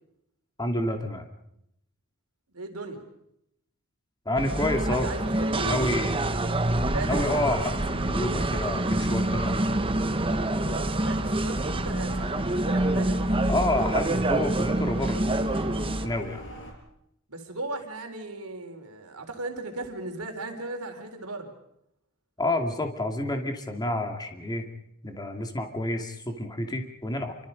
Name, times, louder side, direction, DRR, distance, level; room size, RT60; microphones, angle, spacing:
voice 1, 0.6-1.3 4.3-5.1 5.6-6.2 7.0-9.6 13.5-15.5 16.0-16.4 22.4-24.7 25.0-27.4, left 1 dB, 20° left, 4 dB, 2.5 m, -29 dB
voice 2, 2.5-3.1 4.4-4.5 4.8-6.3 6.9-7.3 10.6-13.3 17.3-21.5, right 2 dB, 80° right, 4 dB, 3.9 m, -37 dB
sound 1, 4.4-16.1, right 1 dB, 25° right, 1.1 m, -26 dB
Diesel truck and small car, 6.6-16.7, equal, 60° left, 6.2 m, -40 dB
28.0 x 25.0 x 5.3 m, 0.78 s
head